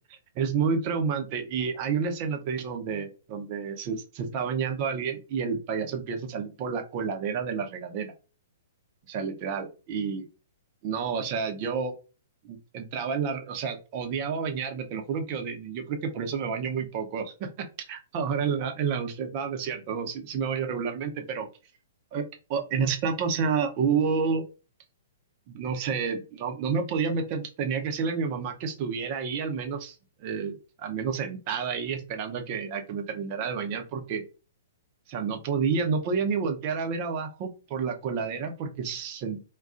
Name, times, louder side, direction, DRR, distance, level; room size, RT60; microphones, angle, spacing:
voice 1, 0.1-8.1 9.1-10.3 10.8-11.9 12.4-17.5 17.9-21.5 22.1-24.4 25.5-34.2 35.1-39.4, right 6 dB, 40° right, 6 dB, 0.7 m, -30 dB
2.4 x 2.3 x 3.6 m, 0.32 s
figure-of-eight pair, 115°, 0 cm